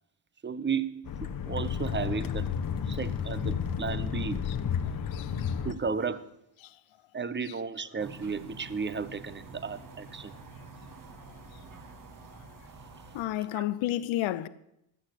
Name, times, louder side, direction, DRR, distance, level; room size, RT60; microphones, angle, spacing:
voice 1, 0.4-2.5 2.9-4.5 5.6-6.3 7.1-10.3 13.5-13.6, right 5 dB, 25° right, 0.8 m, -34 dB
sound 1, 1.0-5.7, left 7 dB, 45° left, 1.2 m, -32 dB
voice 2, 5.0-5.6 6.6-6.8 7.5-7.6 11.5-11.6 13.1-14.5, left 14 dB, 75° left, 0.9 m, -32 dB
sound 2, 8.0-13.2, right 3 dB, 40° right, 1.7 m, -48 dB
15.0 x 6.5 x 8.1 m
cardioid pair, 75°, 47 cm